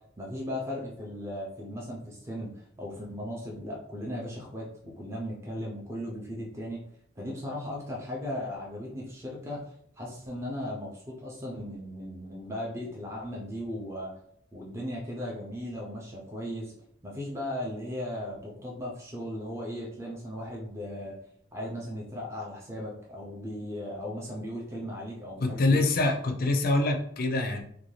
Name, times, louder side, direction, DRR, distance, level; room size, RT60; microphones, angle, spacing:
voice 1, 0.2-6.8 7.2-14.1 14.5-16.7 17.0-21.2 21.5-25.8, left 1 dB, 15° right, -3 dB, 0.5 m, -37 dB
voice 2, 25.4-27.6, left 2 dB, 50° left, 5 dB, 0.4 m, -25 dB
2.6 x 2.2 x 3.1 m, 0.70 s
head